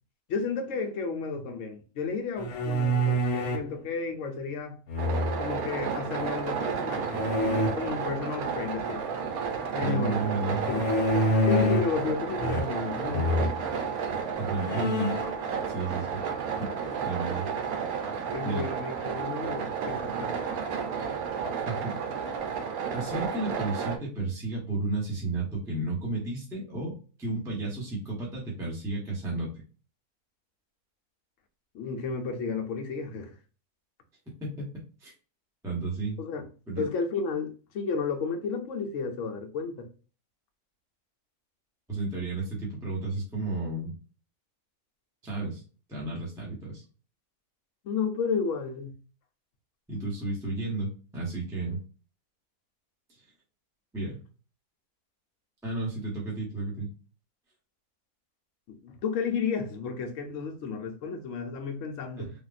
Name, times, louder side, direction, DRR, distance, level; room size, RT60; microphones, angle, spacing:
voice 1, 0.3-4.8 5.4-7.1 7.7-9.0 9.7-10.3 10.7-10.8 11.5-13.5 18.3-20.3 31.7-33.4 36.2-36.5 36.8-39.9 47.8-49.0 58.7-62.3, left 5 dB, 65° left, 1.0 m, -32 dB
sound 1, 2.4-3.7 4.9-5.6 7.1-7.7 10.6-12.0 12.4-12.9 13.1-13.5 14.1-14.2 14.6-15.3, equal, 80° left, 1.2 m, -26 dB
sound 2, 5.0-24.0, right 6 dB, 75° right, 1.1 m, -32 dB
voice 2, 9.8-10.7 14.4-15.1 15.7-16.2 16.6-16.7 17.0-17.5 18.4-18.6 21.7-22.0 22.9-29.5 34.4-34.7 35.0-35.1 35.6-36.2 36.7-36.8 41.9-43.9 45.2-45.6 45.9-46.8 49.9-51.8 53.9-54.2 55.6-56.9 62.2-62.3, right 3 dB, 5° right, 0.8 m, -32 dB
3.4 x 2.4 x 2.4 m
omnidirectional pair, 1.5 m